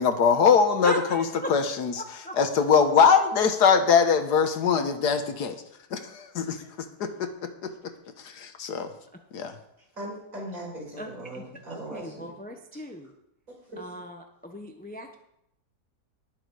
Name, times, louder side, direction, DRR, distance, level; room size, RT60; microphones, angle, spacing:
voice 1, 0.0-1.2 1.5-1.9 2.4-5.6 5.9-7.9 8.2-8.9 9.3-9.5, left 6 dB, 80° left, 8 dB, 1.7 m, -22 dB
voice 2, 0.8-1.5 2.0-2.4 11.0-13.1 13.8-15.2, equal, 10° left, 5 dB, 0.6 m, -37 dB
voice 3, 10.0-12.3, right 1 dB, 55° right, -4 dB, 5.8 m, -38 dB
19.5 x 7.2 x 4.8 m, 0.79 s
omnidirectional pair, 1.7 m